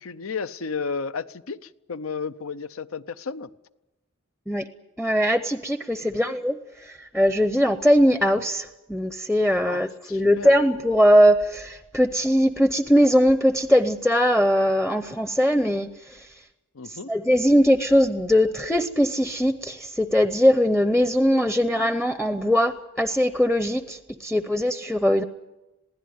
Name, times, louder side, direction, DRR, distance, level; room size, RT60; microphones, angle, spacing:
voice 1, 0.0-3.5 9.7-10.5 16.7-17.1, left 5 dB, 75° left, 0.7 m, -33 dB
voice 2, 5.0-16.3 16.9-25.2, equal, ahead, 0.6 m, -21 dB
22.0 x 16.5 x 9.5 m
head